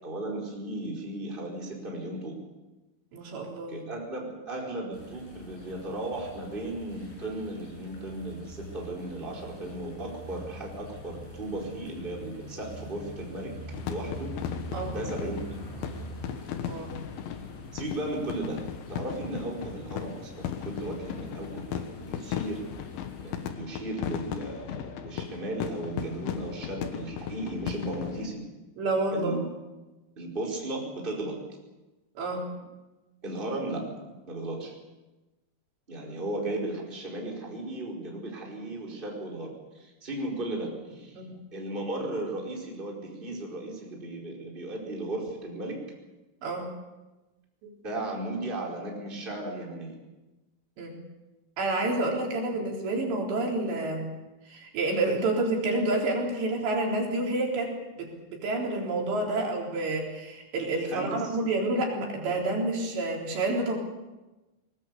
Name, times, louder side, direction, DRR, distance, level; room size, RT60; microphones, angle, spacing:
voice 1, 0.0-2.3 3.7-13.5 13.9-14.3 14.9-15.4 17.7-18.6 18.9-22.6 23.1-28.4 29.1-29.4 30.2-31.4 33.2-33.9 34.3-34.7 35.9-41.2 41.5-45.8 47.8-50.0 52.2-52.3 60.8-61.4, right 1 dB, 10° right, -2 dB, 4.5 m, -35 dB
voice 2, 3.1-3.8 14.7-15.0 16.7-16.9 28.8-29.3 32.2-32.5 41.2-41.4 46.4-46.7 47.6-47.7 50.8-51.0 51.6-54.1 54.5-63.8, right 2 dB, 70° right, -1 dB, 6.0 m, -29 dB
sound 1, 4.9-23.5, right 1 dB, 45° left, 8.5 m, -45 dB
sound 2, 13.7-28.3, left 9 dB, 85° left, 3.8 m, -37 dB
23.0 x 20.5 x 7.0 m, 1.1 s
omnidirectional pair, 5.2 m